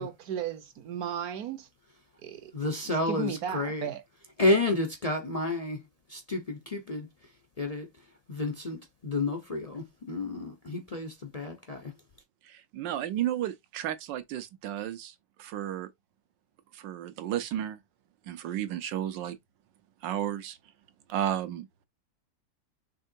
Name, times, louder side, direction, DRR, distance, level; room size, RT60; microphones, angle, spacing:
voice 1, 0.0-1.7 2.2-2.5 2.8-4.0, right 8 dB, 60° right, 1.1 m, -35 dB
voice 2, 2.5-3.9 4.4-5.8 6.1-7.1 7.6-7.9 8.3-11.9, left 2 dB, 70° left, 0.3 m, -30 dB
voice 3, 12.5-15.9 16.7-17.8 18.3-19.4 20.0-20.6 21.1-21.6, right 11 dB, 80° right, 1.4 m, -33 dB
5.5 x 3.6 x 2.6 m
omnidirectional pair, 2.0 m